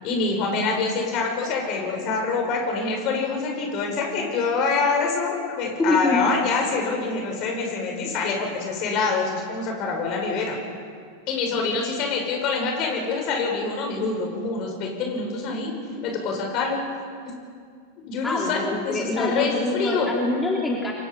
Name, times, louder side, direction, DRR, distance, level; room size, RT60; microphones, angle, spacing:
voice 1, 0.0-10.6 11.3-15.7 16.0-16.8 17.2-17.4 18.1-20.1, left 4 dB, 40° left, 1 dB, 6.7 m, -25 dB
voice 2, 5.8-6.3 18.2-20.9, left 2 dB, 10° left, -2 dB, 3.0 m, -25 dB
29.5 x 24.0 x 5.7 m, 2.2 s
figure-of-eight pair, 90°, 0 cm